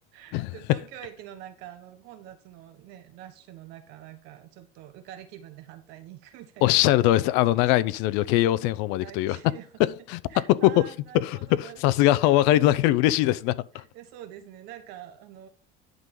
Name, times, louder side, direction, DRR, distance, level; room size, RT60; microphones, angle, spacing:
voice 1, 0.1-7.0 9.0-9.8 10.3-12.3 13.4-15.5, right 11 dB, 65° right, 1.2 m, -46 dB
voice 2, 6.6-9.4 9.8-10.2 10.6-10.7 11.2-13.8, left 15 dB, 75° left, 0.6 m, -22 dB
11.0 x 3.9 x 5.4 m
cardioid pair, 165°, 19 cm